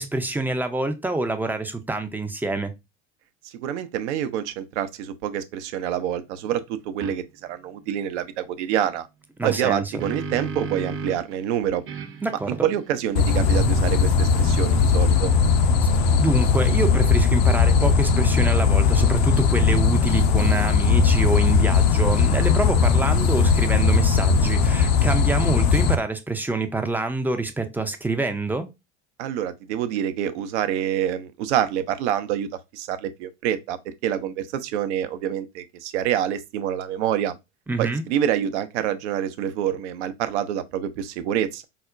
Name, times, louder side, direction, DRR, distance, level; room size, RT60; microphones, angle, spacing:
voice 1, 0.0-2.7 9.4-9.9 12.2-12.7 16.2-28.7 37.7-38.0, right 2 dB, 5° right, 0.4 m, -26 dB
voice 2, 3.4-9.1 9.4-11.8 12.5-15.3 29.2-37.4 37.8-41.6, right 10 dB, 70° right, 0.6 m, -27 dB
sound 1, 7.0-7.2 9.6-11.3 11.9-15.2, right 4 dB, 35° right, 0.7 m, -36 dB
sound 2, 13.2-26.0, left 5 dB, 60° left, 0.6 m, -19 dB
4.8 x 2.1 x 2.4 m
hypercardioid pair, 75°, 36 cm